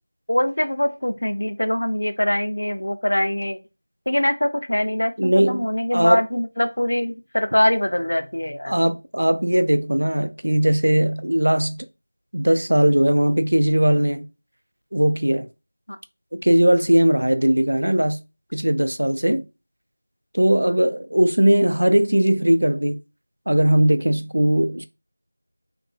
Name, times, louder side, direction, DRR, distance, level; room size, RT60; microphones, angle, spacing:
voice 1, 0.3-3.6 4.1-8.7 20.7-20.8, left 1 dB, 55° left, 0.5 m, -23 dB
voice 2, 5.2-6.2 8.7-11.8 12.3-14.3 14.9-15.5 16.3-18.2 18.5-19.5 20.3-23.0 23.5-24.9, right 1 dB, 85° right, 0.5 m, -19 dB
3.3 x 2.2 x 3.4 m
figure-of-eight pair, 180°, 0 cm